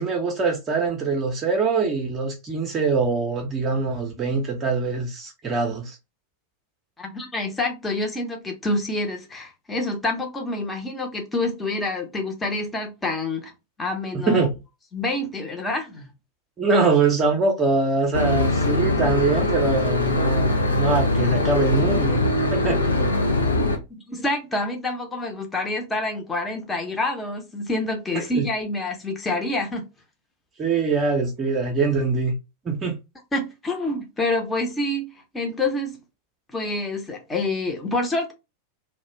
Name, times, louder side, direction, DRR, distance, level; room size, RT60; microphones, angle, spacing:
voice 1, 0.0-6.0 14.3-14.6 16.6-22.2 22.5-23.0 28.3-28.5 30.6-32.4 32.6-33.0, right 4 dB, 25° right, 0.6 m, -23 dB
voice 2, 7.0-13.5 13.8-14.5 14.9-16.1 23.6-29.9 33.3-36.0 36.5-38.3, left 2 dB, 15° left, 0.7 m, -27 dB
Boat Water vehicle / Engine, 18.1-23.8, left 2 dB, 80° left, 0.6 m, -22 dB
2.4 x 2.1 x 3.0 m
figure-of-eight pair, 90°, 0 cm